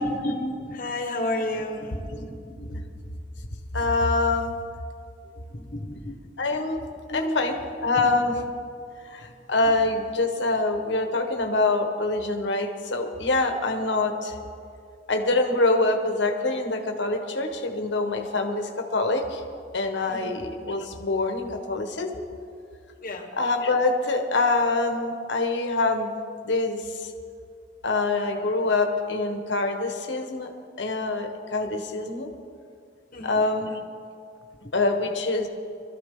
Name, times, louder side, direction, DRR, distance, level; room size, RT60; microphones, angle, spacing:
voice 1, 0.0-2.9 4.3-4.5 5.5-6.2 7.1-7.6 8.0-8.1 9.6-9.7 20.1-20.3 23.0-23.3 33.1-33.7, left 1 dB, 50° left, 4 dB, 1.3 m, -32 dB
voice 2, 3.7-4.5 6.4-6.8 7.1-8.3 9.5-14.3 15.1-18.6 18.9-19.4 19.7-22.1 23.4-26.1 26.5-26.8 27.8-30.5 30.8-32.3 33.2-33.7 34.7-35.5, left 2 dB, 80° left, 4 dB, 1.3 m, -25 dB
22.0 x 13.5 x 3.8 m, 2.4 s
head